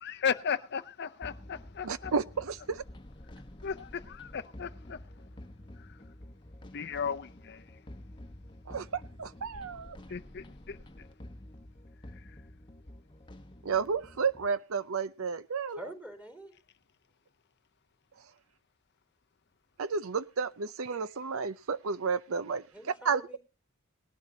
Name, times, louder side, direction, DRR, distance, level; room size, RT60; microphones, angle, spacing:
voice 1, 0.0-2.1 3.6-5.0 6.7-7.6 10.1-10.8, left 7 dB, 50° left, 0.6 m, -35 dB
sound 1, 1.2-14.5, left 1 dB, 20° left, 1.1 m, -49 dB
voice 2, 1.8-2.8 8.7-10.0 13.6-15.9 19.8-23.4, right 5 dB, 65° right, 0.6 m, -32 dB
voice 3, 15.7-16.5 22.7-23.4, equal, 10° right, 3.8 m, -46 dB
19.5 x 11.5 x 2.8 m
head